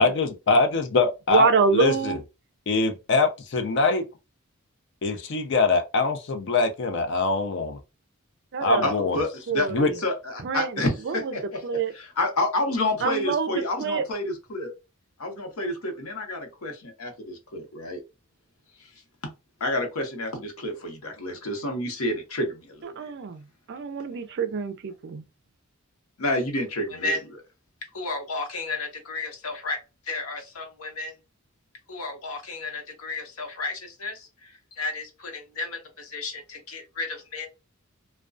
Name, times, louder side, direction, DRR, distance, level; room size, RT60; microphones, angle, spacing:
voice 1, 0.0-2.2 2.7-4.1 5.0-7.8 8.6-9.2 9.7-9.9, left 3 dB, 55° left, 0.5 m, -23 dB
voice 2, 1.3-2.2 8.5-8.9 9.5-10.0 10.4-10.8 11.1-11.2 11.6-11.9 13.0-14.0 23.0-23.4 23.7-25.2, right 5 dB, 55° right, 0.4 m, -26 dB
voice 3, 8.8-9.7 10.0-14.7 15.2-18.0 18.8-18.9 19.2-19.3 19.6-23.1 26.2-27.4 27.9-29.8 30.1-31.1 31.9-37.5, left 2 dB, 90° left, 0.8 m, -30 dB
2.3 x 2.2 x 2.4 m
head